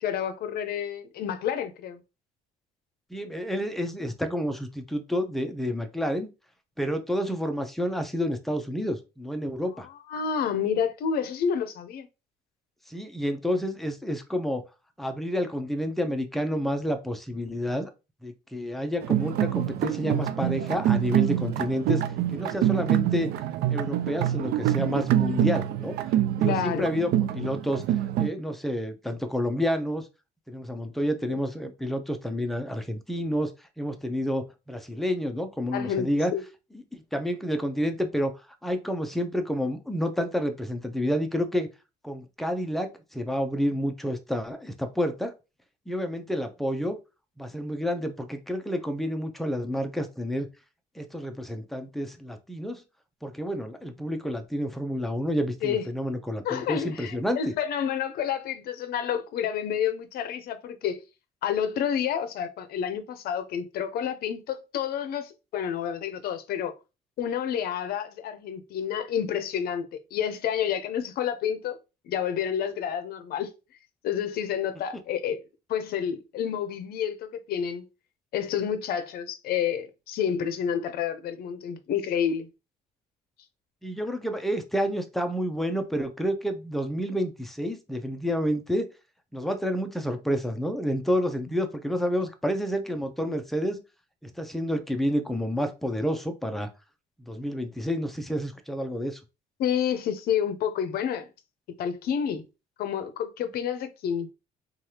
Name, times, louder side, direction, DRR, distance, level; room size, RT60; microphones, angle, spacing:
voice 1, 0.0-2.0 9.8-12.1 26.4-26.9 31.3-31.4 35.7-36.4 55.6-55.8 56.4-61.0 61.4-66.7 67.2-69.9 70.1-71.8 72.1-73.5 74.0-75.4 75.7-77.8 78.3-82.5 99.6-101.3 101.8-102.4 102.8-104.3, left 8 dB, 65° left, 0.6 m, -29 dB
voice 2, 3.1-6.3 6.8-9.9 12.9-14.6 15.0-17.9 18.2-22.0 22.3-23.3 23.7-26.0 26.4-27.8 28.2-30.1 30.5-33.5 33.8-36.3 36.9-38.4 38.6-41.7 42.0-45.3 45.9-47.0 47.4-50.5 51.0-52.8 53.2-57.5 83.8-88.9 89.3-93.8 94.2-96.7 97.3-99.2, equal, ahead, 0.5 m, -29 dB
sound 1, 19.0-28.3, right 12 dB, 75° right, 0.4 m, -26 dB
3.2 x 2.4 x 2.8 m
cardioid pair, 110°, 17 cm